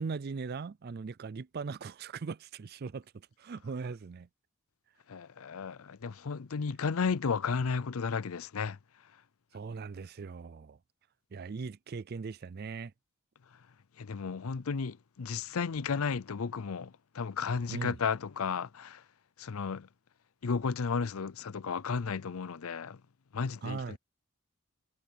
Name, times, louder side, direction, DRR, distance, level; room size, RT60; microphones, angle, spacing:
voice 1, 0.0-3.0 3.4-4.3 9.5-10.8 11.3-12.9 17.7-18.0 23.6-24.0, right 4 dB, 45° right, 0.4 m, -39 dB
voice 2, 5.1-8.8 14.0-19.0 19.4-19.9 20.4-23.0 23.3-24.0, left 5 dB, 70° left, 0.6 m, -33 dB
head